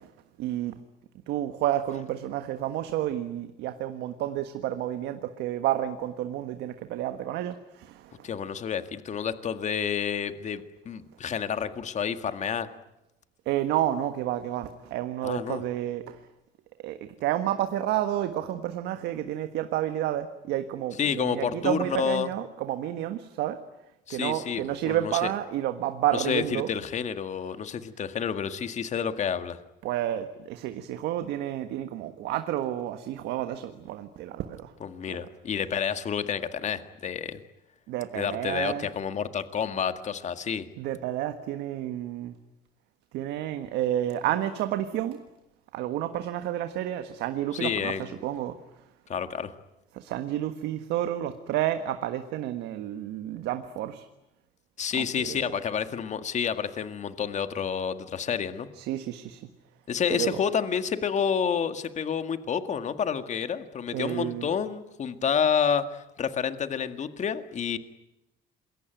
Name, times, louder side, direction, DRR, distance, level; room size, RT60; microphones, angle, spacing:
voice 1, 0.4-0.7 1.3-8.3 13.4-16.2 16.8-23.6 24.1-26.7 29.8-34.7 37.9-38.9 40.8-42.3 43.1-45.2 45.7-48.6 49.9-54.1 55.0-55.4 58.8-59.4 60.1-60.4 63.9-64.5, right 12 dB, 85° right, 9 dB, 1.5 m, -30 dB
voice 2, 8.2-12.7 15.2-15.6 21.0-22.3 24.1-25.3 26.1-29.6 34.8-37.4 38.2-40.7 47.5-48.2 49.1-49.5 54.8-58.7 59.9-67.8, left 7 dB, 45° left, 10 dB, 1.8 m, -29 dB
27.5 x 22.0 x 9.2 m, 0.92 s
cardioid pair, 110°, 17 cm